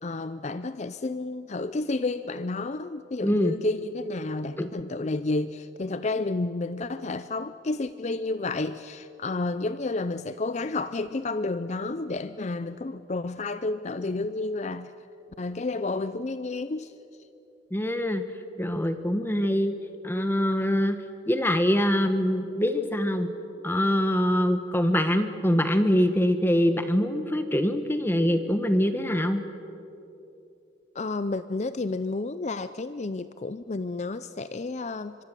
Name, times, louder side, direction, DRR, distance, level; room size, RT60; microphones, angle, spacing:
voice 1, 0.0-14.9 15.4-16.9 30.9-35.2, left 3 dB, 35° left, 13 dB, 0.5 m, -31 dB
voice 2, 3.2-3.5 4.6-4.7 17.7-18.2 18.6-19.7 20.0-21.0 21.3-23.3 23.6-29.4, equal, 10° left, 9 dB, 1.0 m, -24 dB
24.5 x 24.0 x 7.5 m, 2.8 s
head